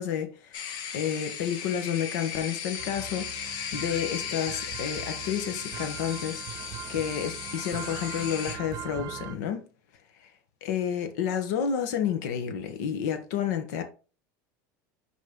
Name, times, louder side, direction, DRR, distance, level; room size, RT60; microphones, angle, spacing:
voice 1, 0.0-9.7 10.2-10.3 10.6-13.8, left 8 dB, 80° left, 1.4 m, -30 dB
sound 1, 0.5-8.6, left 8 dB, 50° left, 1.1 m, -36 dB
sound 2, 2.8-9.4, right 11 dB, 45° right, 0.9 m, -41 dB
5.8 x 4.8 x 3.9 m
supercardioid pair, 145°, 9 cm